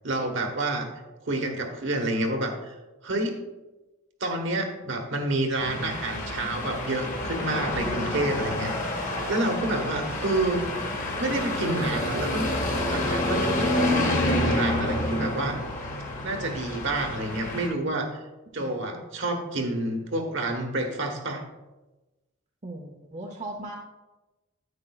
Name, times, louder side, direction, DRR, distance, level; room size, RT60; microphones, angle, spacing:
voice 1, 0.0-0.9 1.2-2.8 3.0-3.4 4.2-10.7 11.2-12.5 12.9-15.8 16.2-18.2 18.5-21.4, right 2 dB, 55° right, 3 dB, 1.2 m, -29 dB
sound 1, 5.6-17.7, left 1 dB, 35° left, 1.4 m, -28 dB
voice 2, 18.6-19.0 22.6-23.8, right 2 dB, 30° right, 1 dB, 0.7 m, -39 dB
9.7 x 8.8 x 2.4 m, 1.1 s
head